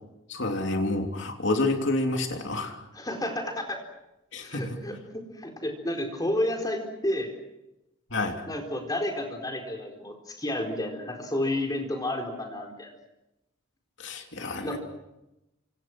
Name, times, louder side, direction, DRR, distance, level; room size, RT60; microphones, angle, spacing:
voice 1, 0.3-2.8 4.3-4.8 8.1-8.4 14.0-14.8, left 2 dB, 55° left, 4 dB, 3.3 m, -29 dB
voice 2, 2.9-3.8 4.4-7.3 8.5-12.9 14.6-14.8, left 1 dB, 20° left, 3 dB, 4.3 m, -31 dB
27.5 x 26.5 x 6.2 m, 0.93 s
head